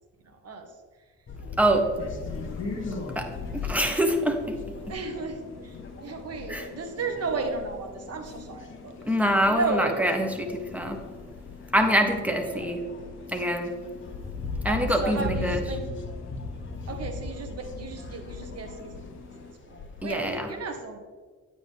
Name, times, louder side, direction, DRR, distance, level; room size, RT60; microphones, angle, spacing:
voice 1, 0.2-0.7 3.6-3.9 4.9-5.8 6.0-9.0 9.3-10.2 12.5-12.7 14.7-15.9 16.9-21.0, right 3 dB, 50° right, 4 dB, 1.7 m, -34 dB
sound 1, 1.3-20.1, left 3 dB, 40° left, 1.2 m, -40 dB
voice 2, 1.6-1.9 3.1-4.6 4.9-5.0 6.5-6.7 9.1-11.0 11.7-12.8 13.3-13.7 14.6-15.6 20.0-20.5, equal, 5° right, 4 dB, 1.3 m, -25 dB
sound 2, 1.9-19.5, left 4 dB, 55° left, 3.2 m, -42 dB
9.3 x 9.1 x 3.6 m, 1.5 s
cardioid pair, 100°, 31 cm